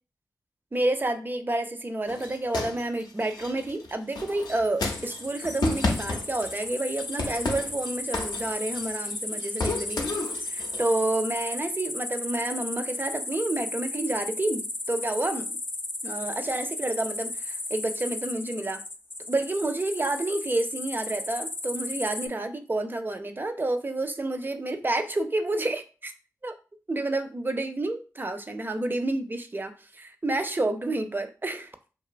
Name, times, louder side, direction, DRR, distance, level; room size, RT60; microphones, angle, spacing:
voice 1, 0.7-10.0 10.5-15.6 16.0-18.8 19.3-26.1 26.4-26.6 26.9-31.9, right 2 dB, 30° right, 0.4 m, -29 dB
sound 1, 2.1-6.7 7.0-9.1 9.4-10.9, left 2 dB, 80° left, 0.5 m, -32 dB
sound 2, 4.9-22.3, left 2 dB, 35° left, 0.4 m, -35 dB
2.7 x 2.2 x 2.4 m
cardioid pair, 40°, 7 cm